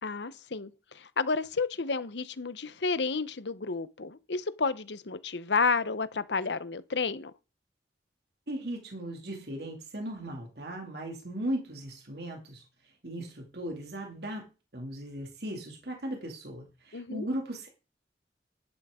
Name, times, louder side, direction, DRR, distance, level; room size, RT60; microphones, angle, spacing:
voice 1, 0.0-7.3 16.9-17.3, left 4 dB, 85° left, 0.9 m, -31 dB
voice 2, 8.5-14.5 14.7-17.7, right 1 dB, 65° right, 2.6 m, -37 dB
11.5 x 11.0 x 3.7 m
head